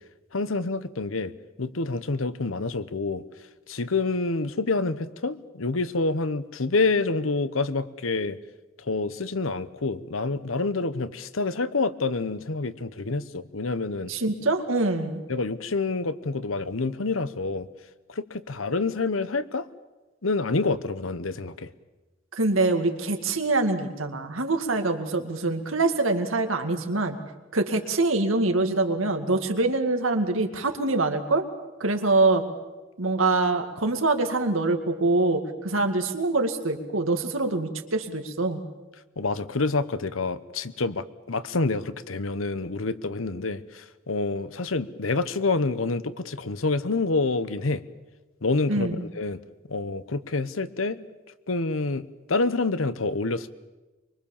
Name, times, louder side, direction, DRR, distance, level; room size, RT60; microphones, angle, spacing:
voice 1, 0.3-1.3 1.6-3.2 3.7-8.4 8.9-14.1 15.3-17.7 18.1-19.7 20.2-21.7 39.2-47.8 48.4-49.4 49.7-51.0 51.5-53.5, left 3 dB, 90° left, 14 dB, 1.0 m, -27 dB
voice 2, 14.1-15.2 22.4-27.2 27.5-31.5 31.8-32.4 33.0-38.6 48.7-49.0, right 2 dB, 90° right, 6 dB, 2.2 m, -24 dB
24.5 x 23.5 x 7.2 m, 1.2 s
head